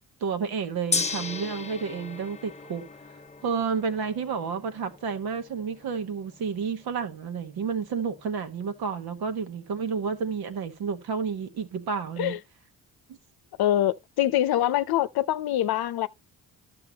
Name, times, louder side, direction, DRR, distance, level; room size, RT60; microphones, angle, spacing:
voice 1, 0.2-2.9 3.4-12.4, right 6 dB, 80° right, 1.4 m, -30 dB
Gong, 0.9-11.1, left 4 dB, 20° left, 0.6 m, -38 dB
voice 2, 13.6-16.1, left 12 dB, 80° left, 0.7 m, -24 dB
12.0 x 6.9 x 2.9 m
cardioid pair, 65°, 37 cm